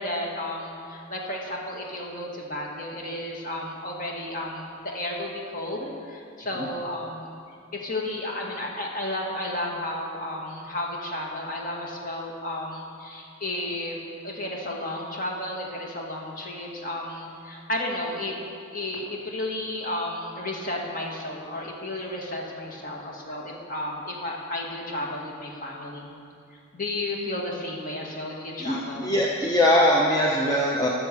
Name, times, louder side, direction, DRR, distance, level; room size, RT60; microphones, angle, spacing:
voice 1, 0.0-7.3 7.7-14.0 14.2-18.4 18.7-26.1 26.7-29.2, left 1 dB, 40° left, -1 dB, 1.9 m, -33 dB
voice 2, 28.6-30.9, left 1 dB, 20° left, -3 dB, 0.8 m, -21 dB
13.5 x 7.1 x 6.9 m, 2.4 s
head